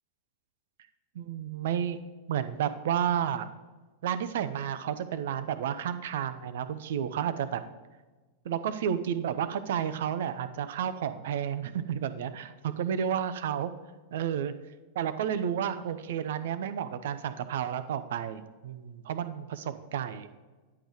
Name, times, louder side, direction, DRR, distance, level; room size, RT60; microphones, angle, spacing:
voice 1, 1.2-2.0 2.3-3.5 4.0-7.6 8.4-13.7 14.1-14.5 15.0-20.3, right 9 dB, 55° right, 12 dB, 0.5 m, -31 dB
9.9 x 3.8 x 4.7 m, 1.3 s
figure-of-eight pair, 90°, 0 cm